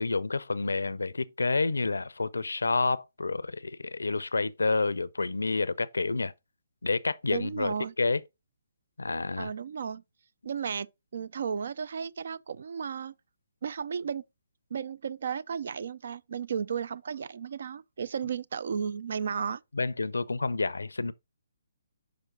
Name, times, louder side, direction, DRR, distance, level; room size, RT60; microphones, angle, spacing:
voice 1, 0.0-6.3 6.8-8.2 9.0-9.5 19.7-21.1, left 3 dB, 85° left, 0.5 m, -29 dB
voice 2, 7.3-7.9 9.4-10.0 10.4-10.9 11.1-13.1 13.6-14.2 14.7-19.6, right 7 dB, 65° right, 0.4 m, -34 dB
6.0 x 4.9 x 3.7 m
hypercardioid pair, 140°, 0 cm